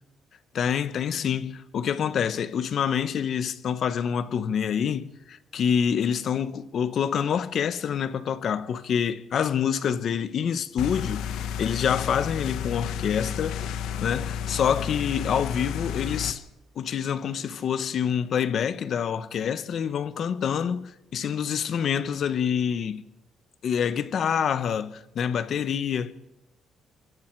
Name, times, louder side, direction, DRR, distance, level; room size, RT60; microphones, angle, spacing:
voice 1, 0.5-13.6 14.0-16.4 16.8-23.0 23.6-26.1, left 8 dB, 50° left, 1.1 m, -27 dB
sound 1, 10.8-16.3, left 8 dB, 90° left, 1.3 m, -31 dB
24.5 x 23.0 x 4.7 m
cardioid pair, 160°, 0 cm